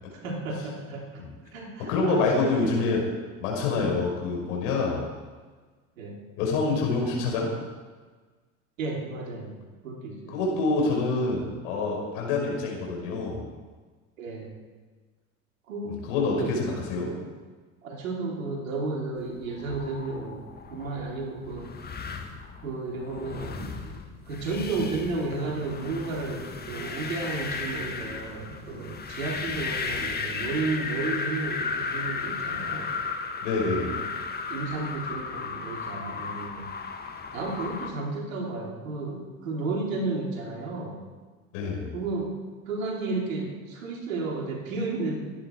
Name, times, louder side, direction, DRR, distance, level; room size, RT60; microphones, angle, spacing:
voice 1, 0.1-1.3 1.5-2.9 6.0-6.2 8.8-9.5 9.8-10.4 14.2-14.5 15.7-16.5 17.1-17.3 17.8-20.4 20.7-21.7 22.6-32.9 33.8-34.1 34.5-36.7 37.3-41.0 41.9-42.4 42.7-45.2, right 3 dB, 70° right, -1 dB, 3.6 m, -33 dB
voice 2, 1.9-3.0 3.4-5.0 6.4-7.5 10.3-13.4 15.9-17.1 33.4-33.9 41.5-41.9, left 3 dB, 65° left, -1 dB, 5.8 m, -26 dB
sound 1, 19.4-37.9, left 5 dB, 25° left, 2.0 m, -35 dB
23.0 x 10.5 x 4.7 m, 1.4 s
figure-of-eight pair, 70°, 41 cm